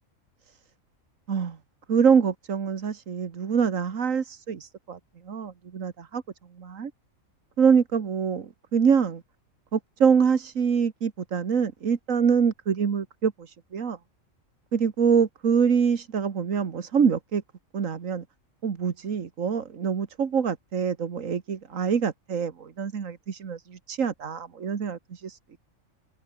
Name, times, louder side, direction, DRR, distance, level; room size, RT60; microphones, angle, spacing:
voice 1, 1.9-5.0 5.3-6.2 6.6-6.9 7.6-9.2 9.7-14.0 14.7-17.4 17.7-18.2 18.6-25.4, right 6 dB, 85° right, 1.9 m, -25 dB
omnidirectional pair, 1.3 m